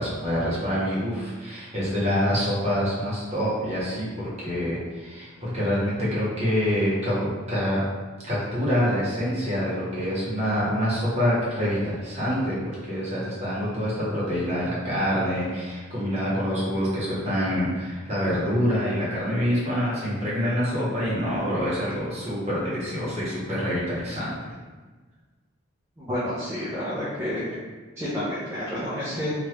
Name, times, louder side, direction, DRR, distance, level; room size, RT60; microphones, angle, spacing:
voice 1, 0.0-7.8 8.3-12.6 12.8-24.3, equal, 30° right, -8 dB, 1.0 m, -26 dB
voice 2, 26.0-27.6 28.0-29.3, left 1 dB, 10° right, -11 dB, 0.5 m, -29 dB
2.8 x 2.4 x 3.2 m, 1.4 s
head